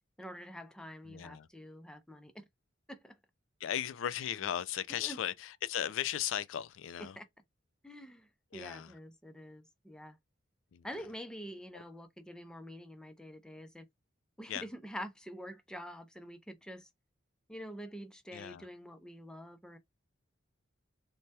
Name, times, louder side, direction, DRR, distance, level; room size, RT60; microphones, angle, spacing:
voice 1, 0.2-2.5 2.9-3.2 4.9-5.2 7.2-7.3 7.8-10.2 10.8-13.9 14.4-16.9 17.5-19.8, equal, 5° left, 0.4 m, -46 dB
voice 2, 1.1-1.5 3.6-7.2 8.5-8.9 10.7-10.8 11.7-11.8 14.5-14.6 18.3-18.7, left 10 dB, 75° left, 0.3 m, -37 dB
3.2 x 2.2 x 2.7 m
head